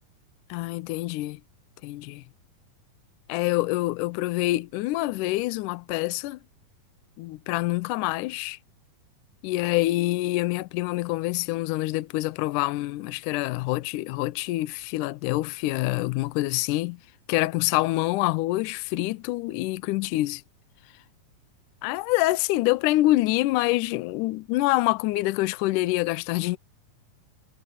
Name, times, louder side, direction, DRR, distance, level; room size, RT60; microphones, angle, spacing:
voice 1, 0.5-1.4 1.8-2.2 3.3-6.4 7.2-8.6 9.4-17.0 17.3-20.4 21.8-26.6, left 18 dB, 80° left, 1.9 m, -26 dB
omnidirectional pair, 4.2 m